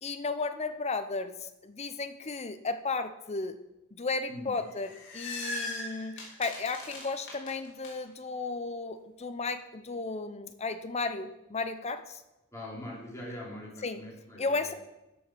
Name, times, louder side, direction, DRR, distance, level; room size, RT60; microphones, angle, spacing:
voice 1, 0.0-3.6 3.9-12.2 13.8-14.0 14.4-14.7, left 3 dB, 30° left, 10 dB, 0.7 m, -34 dB
sound 1, 4.6-7.9, left 2 dB, 60° left, 3.2 m, -39 dB
voice 2, 12.5-14.7, left 1 dB, 15° left, -4 dB, 3.2 m, -42 dB
13.0 x 5.6 x 6.0 m, 0.96 s
head